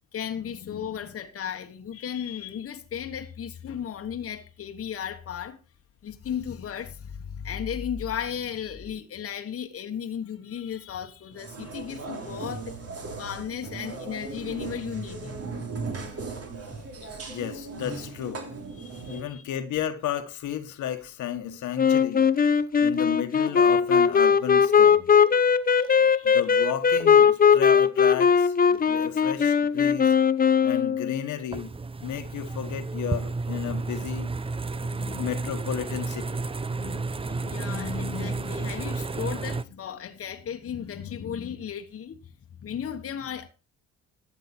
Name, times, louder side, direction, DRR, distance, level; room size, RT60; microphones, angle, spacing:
voice 1, 0.1-5.6 6.0-12.7 13.2-15.8 18.8-19.4 25.7-26.4 34.8-35.3 36.7-42.2 42.6-43.5, left 8 dB, 50° left, 1.2 m, -35 dB
sound 1, 11.3-19.2, right 4 dB, 50° right, 3.0 m, -37 dB
voice 2, 17.0-18.4 19.1-22.3 22.8-25.1 26.2-30.2 30.6-31.7 32.0-34.3 35.2-36.5, left 10 dB, 80° left, 1.4 m, -33 dB
Wind instrument woodwind instrument, 21.8-31.2, left 6 dB, 30° left, 0.7 m, -20 dB
sound 2, 31.5-39.6, right 3 dB, 20° right, 0.5 m, -32 dB
12.5 x 8.2 x 4.3 m
cardioid pair, 90°, 30 cm